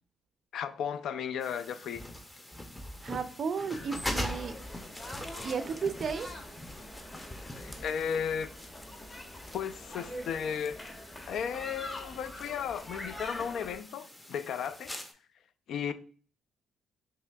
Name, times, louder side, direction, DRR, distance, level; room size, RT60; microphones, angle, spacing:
voice 1, 0.5-2.0 7.5-8.5 9.5-10.8 11.3-14.9 15.7-15.9, left 7 dB, 70° left, 0.3 m, -34 dB
sound 1, 1.4-15.1, left 1 dB, 15° left, 0.6 m, -43 dB
voice 2, 3.0-4.6 5.4-6.3, right 6 dB, 55° right, 0.4 m, -34 dB
sound 2, 3.7-13.8, left 1 dB, 30° left, 1.0 m, -45 dB
5.7 x 2.7 x 2.3 m
cardioid pair, 90°, 0 cm